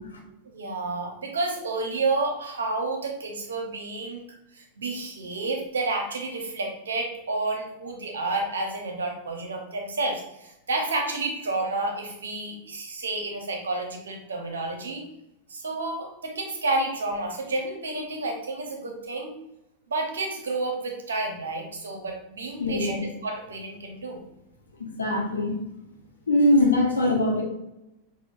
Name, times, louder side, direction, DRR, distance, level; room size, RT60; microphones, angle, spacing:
voice 1, 0.5-15.0 15.5-19.3 19.9-24.2, right 2 dB, 70° right, 3 dB, 0.8 m, -30 dB
voice 2, 22.6-23.0 25.0-25.5 26.3-27.4, left 1 dB, 75° left, -1 dB, 1.1 m, -21 dB
5.9 x 2.5 x 2.6 m, 0.88 s
figure-of-eight pair, 90°, 0 cm